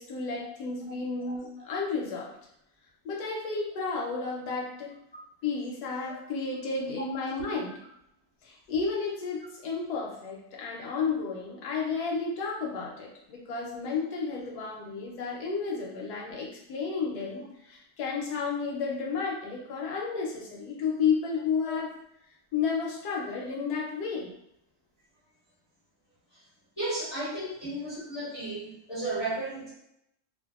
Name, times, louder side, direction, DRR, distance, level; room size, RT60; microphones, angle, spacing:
voice 1, 0.0-2.3 3.0-4.9 5.4-7.8 8.4-21.9 22.5-24.3, left 5 dB, 75° left, -3 dB, 1.2 m, -32 dB
voice 2, 26.8-29.7, right 2 dB, 20° left, -10 dB, 0.8 m, -34 dB
2.6 x 2.5 x 2.4 m, 0.77 s
omnidirectional pair, 1.7 m